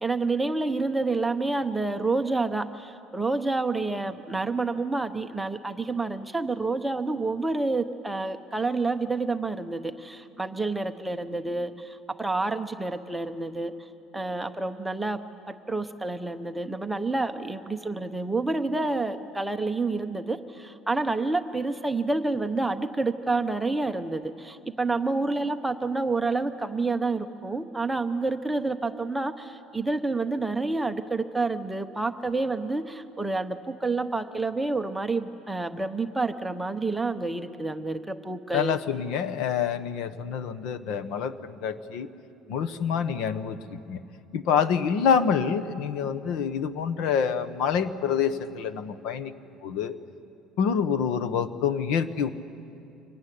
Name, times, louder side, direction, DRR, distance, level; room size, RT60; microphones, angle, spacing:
voice 1, 0.0-13.7 14.1-15.2 15.5-38.8 50.8-50.9, right 3 dB, 5° right, 7 dB, 0.8 m, -28 dB
voice 2, 38.5-42.1 42.5-44.0 44.3-49.3 49.6-49.9 50.6-52.3, left 7 dB, 60° left, 12 dB, 1.2 m, -27 dB
25.5 x 23.0 x 10.0 m, 2.6 s
cardioid pair, 170°, 0 cm